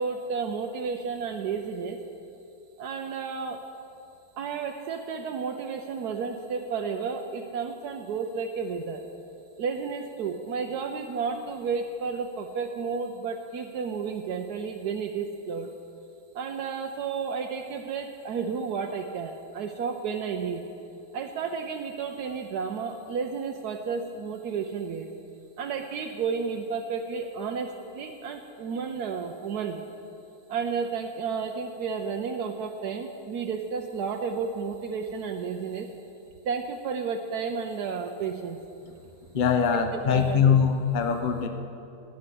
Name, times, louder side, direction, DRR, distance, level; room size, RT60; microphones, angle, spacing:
voice 1, 0.0-2.0 2.8-3.6 4.4-9.0 9.6-15.7 16.3-20.6 21.1-25.1 25.6-29.8 30.5-35.9 36.4-38.6 40.1-40.4, right 5 dB, 70° right, 3 dB, 1.0 m, -32 dB
voice 2, 39.3-41.5, left 7 dB, 65° left, 6 dB, 0.4 m, -22 dB
13.0 x 9.9 x 7.8 m, 2.7 s
omnidirectional pair, 2.4 m